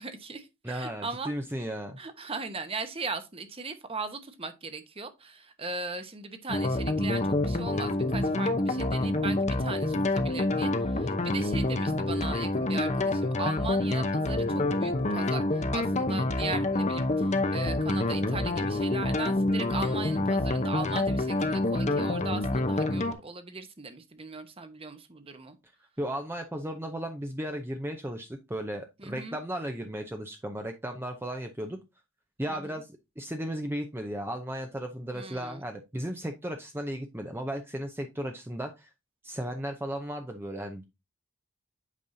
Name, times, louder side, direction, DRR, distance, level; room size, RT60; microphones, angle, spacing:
voice 1, 0.0-1.3 2.0-25.6 29.0-29.4 32.5-32.8 35.1-35.6, right 3 dB, 25° right, 1.0 m, -38 dB
voice 2, 0.6-2.0 26.0-31.8 32.4-38.9 39.2-40.8, right 1 dB, 10° right, 0.6 m, -35 dB
sound 1, 6.5-23.1, left 2 dB, 30° left, 0.7 m, -27 dB
8.4 x 5.3 x 2.7 m
head